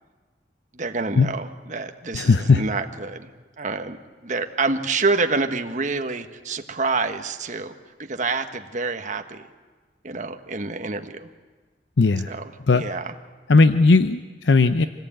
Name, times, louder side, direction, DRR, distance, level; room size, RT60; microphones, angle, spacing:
voice 1, 0.7-3.3 3.6-4.0 4.2-7.7 8.0-9.5 10.0-11.3 12.3-13.1, right 3 dB, 45° right, 6 dB, 1.4 m, -27 dB
voice 2, 2.1-2.6 12.0-12.3 12.7-12.8 13.5-14.9, left 3 dB, 85° left, 10 dB, 0.7 m, -17 dB
25.5 x 18.5 x 8.9 m, 1.4 s
head